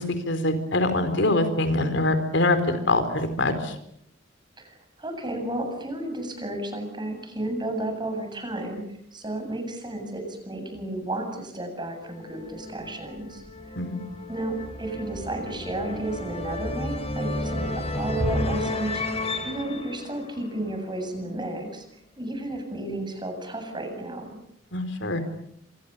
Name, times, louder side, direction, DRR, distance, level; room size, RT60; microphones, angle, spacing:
voice 1, 0.0-3.7 13.8-14.0 24.7-25.2, left 2 dB, 70° left, 10 dB, 4.3 m, -24 dB
voice 2, 4.6-8.8 9.1-13.4 14.3-24.4, right 2 dB, 25° right, 6 dB, 7.8 m, -32 dB
sound 1, 12.1-21.1, left 1 dB, 35° left, 5.1 m, -32 dB
28.5 x 26.5 x 6.9 m, 0.71 s
head